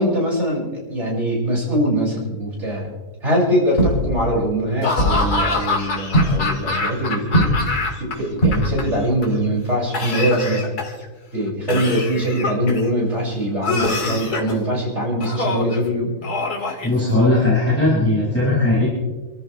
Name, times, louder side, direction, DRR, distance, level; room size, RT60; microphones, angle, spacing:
voice 1, 0.0-2.9 3.2-7.6 8.0-10.7 11.3-16.1, equal, 45° right, -5 dB, 7.5 m, -22 dB
sound 1, 3.8-4.5 5.0-5.7 6.1-6.6 7.3-7.9 8.4-9.0 10.2-10.3 12.4-12.5, equal, 40° left, 4.3 m, -20 dB
Laughter / Cough, 4.8-8.1 8.4-9.2 9.9-11.1 11.7-12.9 13.6-14.6 15.2-15.8 16.2-17.4, left 3 dB, 85° left, 2.8 m, -25 dB
voice 2, 16.8-18.9, left 2 dB, 10° left, -9 dB, 6.5 m, -18 dB
29.5 x 13.5 x 3.5 m, 1.2 s
omnidirectional pair, 1.6 m